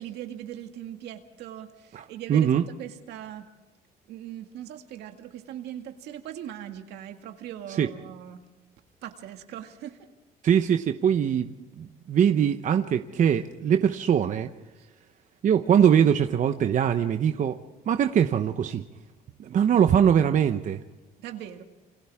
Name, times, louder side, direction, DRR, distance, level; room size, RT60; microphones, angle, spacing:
voice 1, 0.0-3.5 4.1-8.4 9.0-10.1 14.8-14.9 21.2-21.6, right 11 dB, 80° right, 5 dB, 2.2 m, -40 dB
voice 2, 1.9-2.6 7.8-7.9 10.4-11.5 11.8-14.5 15.4-17.6 17.9-18.8 19.4-20.8, right 8 dB, 50° right, 7 dB, 0.9 m, -22 dB
28.5 x 25.0 x 3.6 m, 1.1 s
cardioid pair, 110°, 17 cm